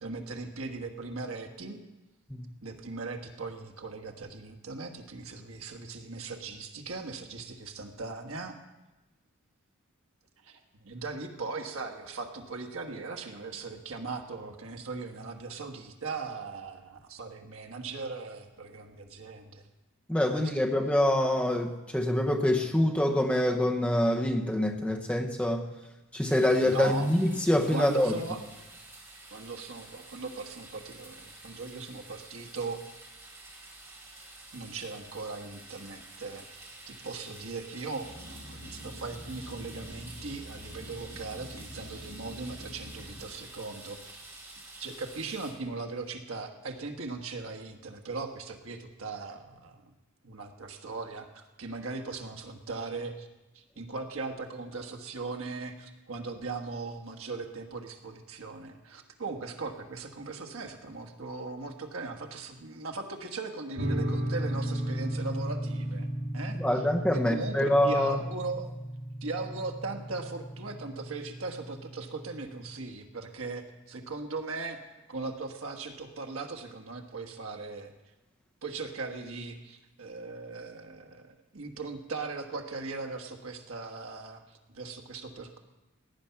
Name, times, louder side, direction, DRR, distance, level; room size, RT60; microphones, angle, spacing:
voice 1, 0.0-1.8 2.6-8.6 10.4-19.6 20.3-20.7 26.6-27.1 27.7-28.4 29.3-32.8 34.5-44.0 44.8-49.9 50.2-53.3 53.5-66.1 66.3-66.6 67.1-68.7 69.2-77.9 78.6-85.6, right 3 dB, 70° right, 5 dB, 1.5 m, -39 dB
voice 2, 20.1-25.7 26.1-28.1 66.6-68.2, left 1 dB, 5° left, 1 dB, 1.0 m, -25 dB
sound 1, 26.2-45.5, right 2 dB, 15° right, 2.8 m, -49 dB
sound 2, 38.0-43.2, left 1 dB, 55° left, 5.0 m, -46 dB
sound 3, 63.8-72.7, right 1 dB, 50° right, 1.8 m, -35 dB
17.5 x 9.8 x 5.9 m, 1.0 s
head